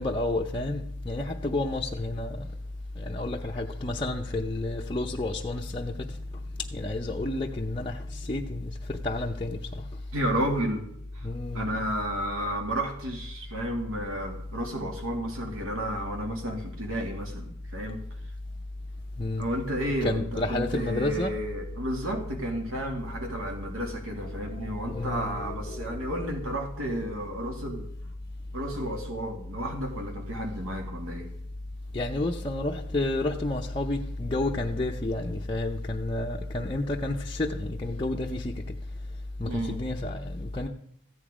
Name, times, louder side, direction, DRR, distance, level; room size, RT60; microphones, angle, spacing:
voice 1, 0.0-2.5 3.0-10.0 11.2-11.8 19.2-19.4 20.0-21.4 24.4-26.1 31.9-38.8 39.4-40.7, left 2 dB, 20° left, 0.6 m, -30 dB
voice 2, 10.1-10.8 11.1-11.3 11.5-18.0 19.4-27.9 28.5-31.3 39.4-39.8, right 1 dB, 70° right, 2.2 m, -32 dB
14.5 x 9.1 x 4.9 m
head